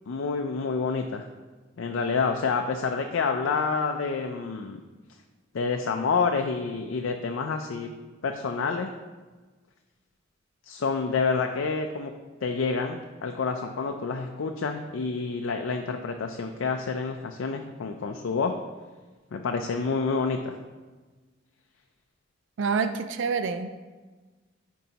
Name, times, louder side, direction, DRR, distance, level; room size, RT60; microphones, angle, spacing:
voice 1, 0.1-1.3 1.8-4.8 5.5-7.9 8.2-8.9 10.7-12.1 12.4-18.5 19.3-20.6, left 4 dB, 85° left, 4 dB, 0.4 m, -28 dB
voice 2, 22.6-23.7, right 5 dB, 70° right, 9 dB, 0.4 m, -27 dB
9.2 x 4.5 x 2.9 m, 1.3 s
head